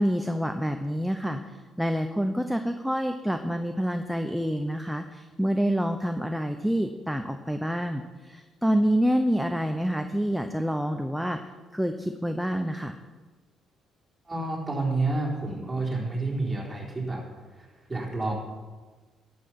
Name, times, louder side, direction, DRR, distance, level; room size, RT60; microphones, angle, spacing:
voice 1, 0.0-11.4 11.7-13.0, equal, ahead, 6 dB, 0.7 m, -27 dB
voice 2, 14.3-17.2 17.5-18.3, right 2 dB, 15° right, -3 dB, 4.0 m, -29 dB
11.5 x 8.6 x 6.0 m, 1.3 s
cardioid pair, 90°, 0 cm